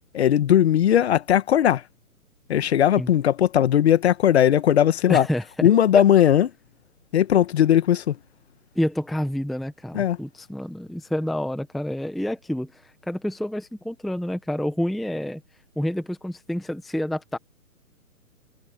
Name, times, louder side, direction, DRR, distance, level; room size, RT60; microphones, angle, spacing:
voice 1, 0.1-1.8 2.5-5.3 5.6-6.5 7.1-8.2 9.9-10.2, left 10 dB, 45° left, 1.7 m, -18 dB
voice 2, 5.1-5.7 5.9-6.0 8.7-15.4 15.8-17.4, left 1 dB, ahead, 0.9 m, -28 dB
hypercardioid pair, 150°, 44 cm